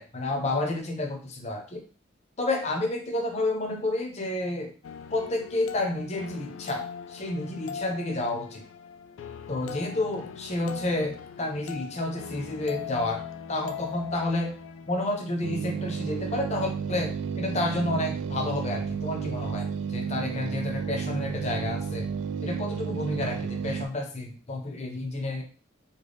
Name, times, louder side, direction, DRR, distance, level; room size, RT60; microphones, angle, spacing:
voice 1, 0.0-1.8 2.4-4.7 5.1-8.6 9.5-13.2 13.5-14.5 14.9-22.1 22.4-25.4, left 2 dB, 35° left, 3 dB, 0.6 m, -30 dB
sound 1, 4.8-15.8, left 7 dB, 85° left, 0.3 m, -41 dB
sound 2, 15.4-23.9, right 6 dB, 70° right, 0.3 m, -32 dB
3.8 x 2.2 x 3.4 m, 0.38 s
head